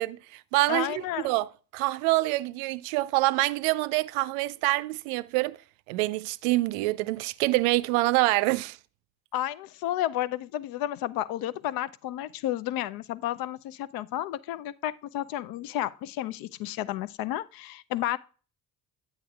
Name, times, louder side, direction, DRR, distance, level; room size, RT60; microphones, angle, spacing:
voice 1, 0.0-0.9 1.2-1.5 1.7-5.6 5.9-8.8, right 20 dB, 65° right, 0.5 m, -26 dB
voice 2, 0.7-1.3 9.3-18.2, left 13 dB, 50° left, 0.5 m, -32 dB
9.8 x 8.8 x 2.3 m
figure-of-eight pair, 40°, 46 cm